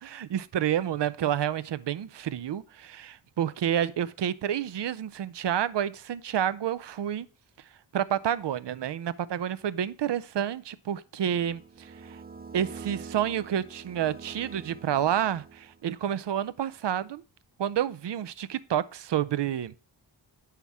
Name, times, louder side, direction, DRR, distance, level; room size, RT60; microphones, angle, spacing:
voice 1, 0.0-7.3 7.9-12.2 12.5-17.2 17.6-19.7, right 10 dB, 65° right, 0.5 m, -29 dB
sound 1, 11.3-16.0, right 5 dB, 20° right, 0.5 m, -45 dB
8.5 x 5.8 x 3.4 m
wide cardioid pair, 120°, 45 cm